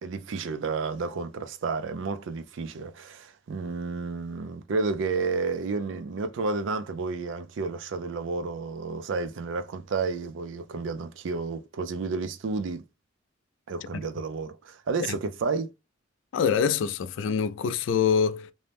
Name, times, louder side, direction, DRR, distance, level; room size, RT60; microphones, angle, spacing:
voice 1, 0.0-12.8 13.7-15.7, right 4 dB, 75° right, 0.4 m, -31 dB
voice 2, 16.3-18.5, left 7 dB, 75° left, 0.3 m, -25 dB
2.6 x 2.1 x 3.2 m
head